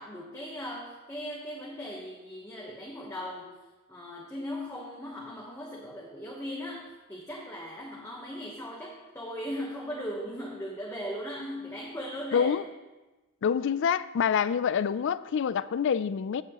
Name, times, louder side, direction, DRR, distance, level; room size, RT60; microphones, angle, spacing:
voice 1, 0.0-3.5 3.9-12.6, equal, 10° left, 1.1 m, -38 dB
voice 2, 12.3-12.7 13.4-16.4, left 7 dB, 55° left, 0.3 m, -26 dB
16.0 x 7.3 x 3.0 m
head